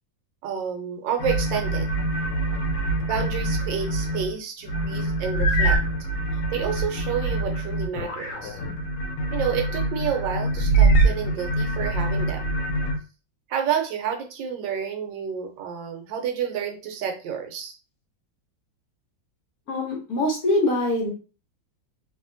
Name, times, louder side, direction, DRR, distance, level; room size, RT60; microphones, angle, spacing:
voice 1, 0.4-1.9 3.1-5.8 6.5-8.6 9.3-12.5 13.5-17.7, right 7 dB, 75° right, 4 dB, 1.3 m, -29 dB
sound 1, 1.2-4.4 4.6-13.0, right 2 dB, 80° left, 1.4 m, -24 dB
voice 2, 19.7-21.1, left 1 dB, 60° left, -1 dB, 1.1 m, -23 dB
2.9 x 2.7 x 2.5 m, 0.34 s
omnidirectional pair, 2.1 m